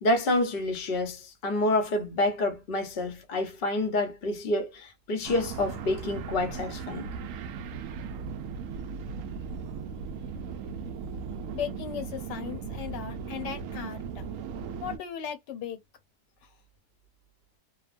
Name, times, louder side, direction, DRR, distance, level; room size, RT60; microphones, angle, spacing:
voice 1, 0.0-7.1, left 2 dB, 50° left, 0.7 m, -28 dB
sound 1, 5.2-15.0, right 6 dB, 80° right, 0.7 m, -37 dB
voice 2, 11.5-14.3 14.8-15.8, left 8 dB, 75° left, 1.4 m, -37 dB
2.9 x 2.1 x 2.4 m
omnidirectional pair, 1.9 m